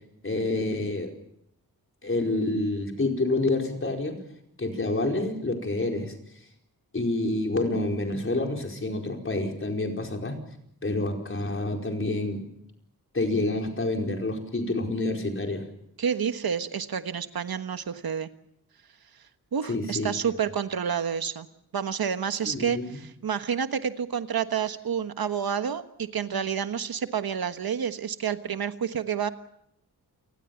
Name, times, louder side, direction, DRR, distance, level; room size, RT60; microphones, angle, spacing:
voice 1, 0.2-1.1 2.0-4.2 4.6-6.1 6.9-10.4 10.8-12.4 13.1-15.7 19.7-20.1 22.4-23.0, left 2 dB, 35° left, 2 dB, 4.8 m, -28 dB
voice 2, 16.0-18.3 19.5-21.5 21.7-29.3, right 7 dB, 80° right, 9 dB, 1.4 m, -29 dB
28.5 x 20.5 x 7.2 m, 0.78 s
wide cardioid pair, 125°, 36 cm